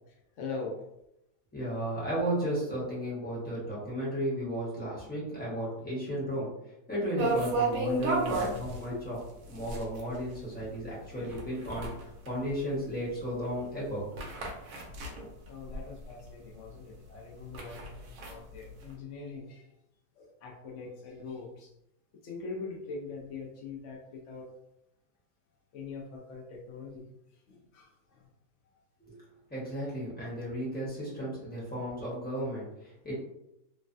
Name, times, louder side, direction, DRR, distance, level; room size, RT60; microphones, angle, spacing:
voice 1, 0.4-0.8 8.9-9.0 11.2-11.4 15.5-19.7 20.2-21.7 22.2-24.5 25.7-27.0 27.5-28.2, left 4 dB, 65° left, -1 dB, 0.7 m, -42 dB
voice 2, 1.5-6.5 6.9-9.2 9.5-11.9 12.3-14.2 29.0-29.2 29.5-33.2, equal, 10° left, -8 dB, 0.7 m, -34 dB
sound 1, 7.2-16.3 16.7-16.8 17.2-18.9, right 2 dB, 70° right, 0.9 m, -34 dB
3.1 x 2.2 x 2.5 m, 0.85 s
omnidirectional pair, 1.8 m